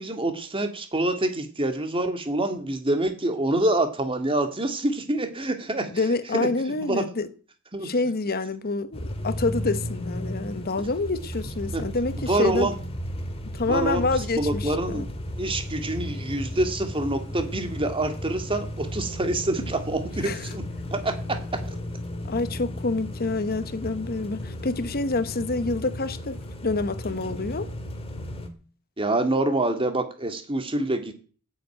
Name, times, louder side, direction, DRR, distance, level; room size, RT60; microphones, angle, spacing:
voice 1, 0.0-6.1 6.3-7.0 7.7-7.9 11.7-11.8 12.2-12.7 13.6-15.1 15.4-20.6 20.9-21.4 21.7-21.8 29.0-31.1, right 2 dB, 25° right, 2.1 m, -26 dB
voice 2, 5.9-7.3 7.8-12.7 13.5-15.1 20.2-20.4 22.3-27.7, left 3 dB, 45° left, 0.9 m, -27 dB
sound 1, 8.9-28.5, equal, 25° left, 1.9 m, -34 dB
13.5 x 8.1 x 9.1 m
head